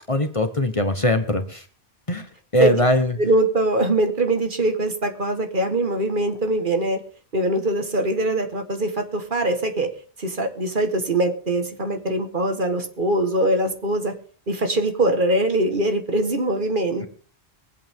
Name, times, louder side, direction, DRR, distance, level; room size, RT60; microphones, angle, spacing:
voice 1, 0.1-1.6 2.1-2.3 2.5-3.2, left 1 dB, 30° left, 7 dB, 1.2 m, -21 dB
voice 2, 3.2-7.0 7.3-9.9 10.2-14.2 14.5-17.1, right 2 dB, 50° right, 6 dB, 1.7 m, -22 dB
23.0 x 8.4 x 3.6 m, 0.42 s
omnidirectional pair, 1.1 m